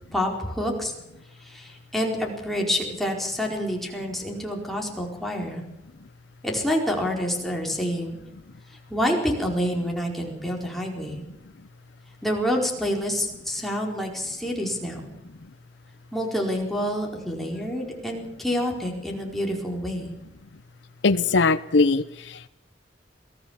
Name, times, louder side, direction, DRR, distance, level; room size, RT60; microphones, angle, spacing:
voice 1, 0.1-0.9 1.4-5.6 6.4-8.2 8.9-11.2 12.2-15.1 16.1-20.1, equal, ahead, 0 dB, 4.5 m, -27 dB
voice 2, 21.0-22.5, left 3 dB, 85° left, 11 dB, 0.7 m, -21 dB
22.5 x 16.0 x 7.2 m, 0.90 s
head